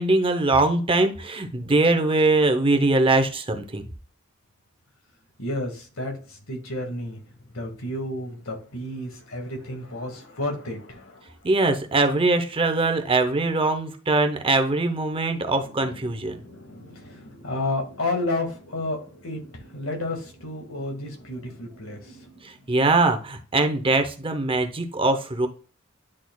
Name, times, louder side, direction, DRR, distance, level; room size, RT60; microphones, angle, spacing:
voice 1, 0.0-3.9 11.4-16.4 22.7-25.5, right 2 dB, 25° right, 0.7 m, -22 dB
voice 2, 5.4-7.2 7.5-11.4 15.5-22.5, left 2 dB, 85° left, 1.8 m, -32 dB
9.8 x 4.2 x 2.3 m
head